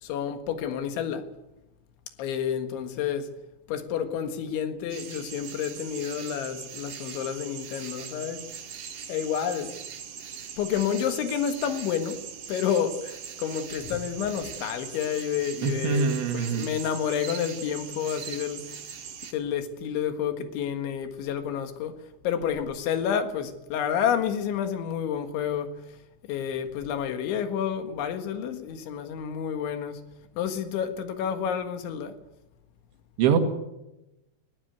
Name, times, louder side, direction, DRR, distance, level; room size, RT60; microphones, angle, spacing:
voice 1, 0.0-1.3 2.2-3.4 3.7-8.5 9.1-9.7 10.6-12.2 12.5-18.8 19.3-21.9 22.2-25.9 26.3-30.0 30.4-32.2, left 8 dB, 80° left, 4.0 m, -29 dB
sound 1, 4.9-19.3, right 7 dB, 55° right, 2.7 m, -41 dB
voice 2, 15.6-16.7 33.2-33.4, right 7 dB, 85° right, 4.5 m, -24 dB
20.5 x 15.0 x 9.4 m
omnidirectional pair, 5.3 m